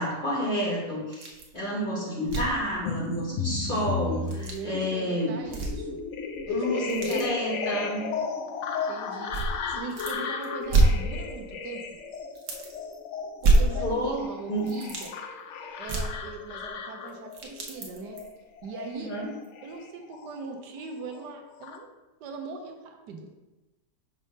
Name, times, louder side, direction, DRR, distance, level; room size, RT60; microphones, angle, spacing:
voice 1, 0.0-5.4 6.5-8.1 13.8-14.7 18.9-19.3, equal, 35° left, -4 dB, 1.4 m, -30 dB
sound 1, 1.1-1.5 1.8-1.9 2.2-2.6 4.1-4.6 5.4-6.0 6.4-7.3 8.1-8.2 9.3-10.2 10.4-11.6 11.9-12.0 12.3-12.9 13.4-14.2 14.6-15.1 15.8-16.8 17.1-18.3 18.8-18.9 19.4-19.5, right 2 dB, 50° right, 1.2 m, -27 dB
sound 2, 2.8-20.6 20.9-21.8, left 5 dB, 70° left, 0.7 m, -35 dB
voice 2, 3.9-6.0 6.5-7.2 8.9-12.0 13.4-15.2 15.8-18.2 18.6-19.1 19.6-21.9 22.2-23.3, right 4 dB, 80° right, 4 dB, 1.3 m, -40 dB
5.3 x 3.3 x 5.4 m, 1.1 s
omnidirectional pair, 1.8 m